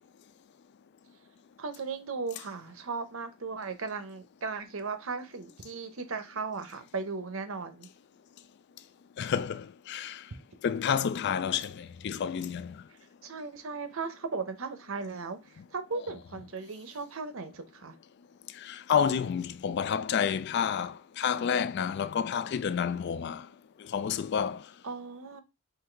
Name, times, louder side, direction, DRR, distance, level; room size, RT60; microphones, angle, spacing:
voice 1, 1.6-7.9 13.2-17.9 24.8-25.4, right 4 dB, 65° right, 0.7 m, -37 dB
voice 2, 9.2-10.2 10.6-12.7 18.6-23.5 23.9-24.6, left 7 dB, 50° left, 0.3 m, -29 dB
4.0 x 2.8 x 4.4 m
head